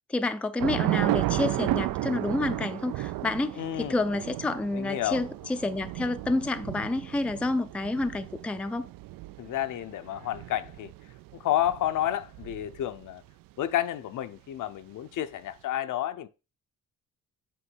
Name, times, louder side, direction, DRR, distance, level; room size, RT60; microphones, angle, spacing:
voice 1, 0.1-8.9, left 2 dB, 5° left, 0.4 m, -29 dB
Thunder / Rain, 0.6-13.1, right 16 dB, 80° right, 0.5 m, -33 dB
voice 2, 3.6-4.0 4.7-5.2 9.4-10.9 11.4-13.2 13.6-16.3, left 12 dB, 65° left, 0.7 m, -30 dB
7.9 x 3.1 x 6.2 m
cardioid pair, 145°, 34 cm